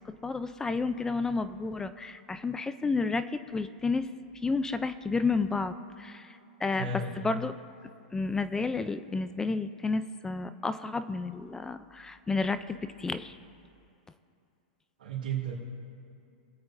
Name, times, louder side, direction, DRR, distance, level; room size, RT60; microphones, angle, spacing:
voice 1, 0.1-4.1 4.4-6.9 7.2-7.5 8.1-13.4, left 4 dB, 10° left, 12 dB, 0.4 m, -31 dB
voice 2, 6.8-7.4 15.0-15.5, right 4 dB, 80° right, -6 dB, 2.6 m, -34 dB
21.5 x 8.7 x 2.6 m, 2.6 s
hypercardioid pair, 130°, 5 cm